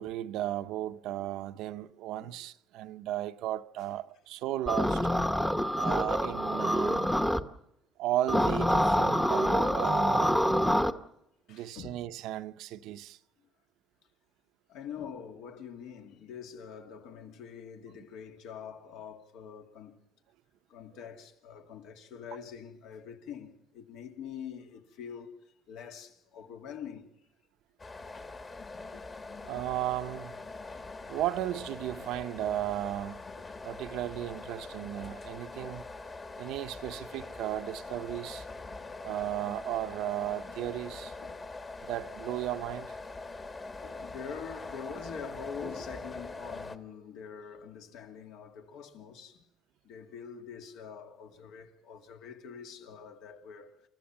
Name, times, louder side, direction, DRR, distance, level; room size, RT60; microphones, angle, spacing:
voice 1, 0.0-5.1 5.8-7.1 8.0-10.4 11.5-13.2 29.4-30.4 31.1-33.2 33.6-35.8 36.4-38.5 39.0-41.1 41.8-43.0, right 13 dB, 75° right, 0.7 m, -35 dB
sound 1, 4.7-7.4 8.3-10.9, equal, 5° left, 0.8 m, -26 dB
voice 2, 11.5-12.0 12.8-12.9 14.7-20.0 20.7-27.1 28.9-29.0 36.3-36.5 41.2-41.5 43.8-49.5 49.8-53.8, left 7 dB, 80° left, 2.4 m, -45 dB
sound 2, 27.8-46.8, left 3 dB, 25° left, 1.3 m, -43 dB
29.0 x 14.0 x 7.1 m
cardioid pair, 145°, 0 cm